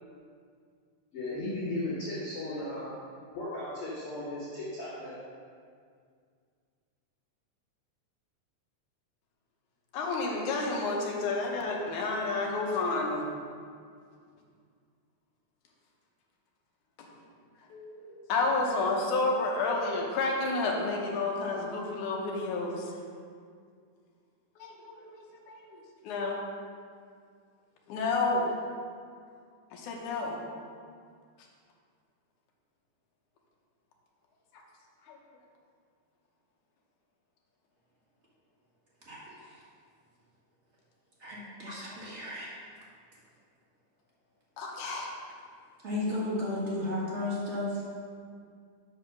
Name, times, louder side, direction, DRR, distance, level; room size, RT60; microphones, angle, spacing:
voice 1, 1.1-2.9 3.3-5.1, left 1 dB, 50° left, -13 dB, 2.7 m, -36 dB
voice 2, 9.9-13.2 17.7-22.9 24.6-25.2 25.5-26.4 27.9-28.5 29.7-30.4 35.1-35.2 44.6-45.1, left 3 dB, 75° left, 0 dB, 2.4 m, -30 dB
voice 3, 39.1-39.5 41.2-42.5 45.8-47.8, left 1 dB, 35° right, -7 dB, 1.1 m, -34 dB
7.0 x 4.9 x 6.0 m, 2.2 s
omnidirectional pair, 3.6 m